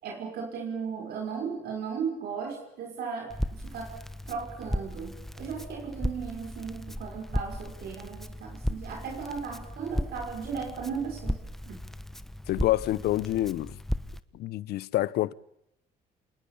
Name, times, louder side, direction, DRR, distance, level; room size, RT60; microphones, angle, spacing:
voice 1, 0.0-11.8, right 6 dB, 70° right, 5.7 m, -36 dB
Crackle, 3.3-14.2, equal, ahead, 1.1 m, -36 dB
voice 2, 12.5-13.8 14.3-15.3, left 15 dB, 70° left, 0.9 m, -27 dB
27.5 x 20.0 x 8.7 m
cardioid pair, 110°, 17 cm